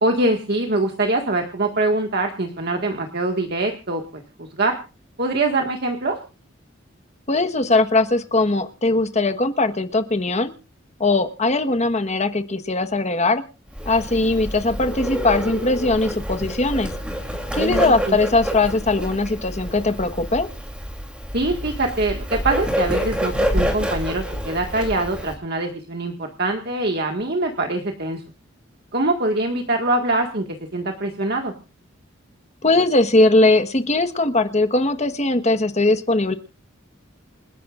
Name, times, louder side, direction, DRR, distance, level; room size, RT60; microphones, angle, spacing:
voice 1, 0.0-4.8 5.2-6.2 17.5-18.2 21.3-28.2 28.9-30.5 30.7-31.5, right 2 dB, 55° right, 3 dB, 1.8 m, -23 dB
voice 2, 7.3-10.5 11.0-13.4 13.9-16.9 17.5-20.5 32.6-36.3, left 2 dB, 35° left, 9 dB, 1.3 m, -20 dB
Bird, 13.7-25.3, equal, 5° right, 3.1 m, -27 dB
28.5 x 11.0 x 2.5 m, 0.34 s
head